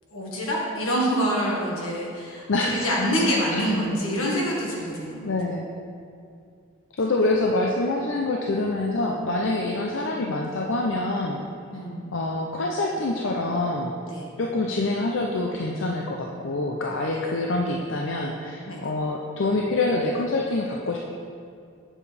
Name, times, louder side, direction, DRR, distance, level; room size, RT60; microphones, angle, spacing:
voice 1, 0.1-5.3 11.7-12.1 14.1-14.3 17.1-17.2 18.7-18.8, equal, 85° left, -3 dB, 1.6 m, -26 dB
voice 2, 2.5-2.9 3.5-3.7 5.2-5.7 7.0-11.4 12.1-13.9 14.4-21.1, left 2 dB, 65° left, 0 dB, 0.5 m, -26 dB
8.4 x 7.2 x 3.4 m, 2.4 s
head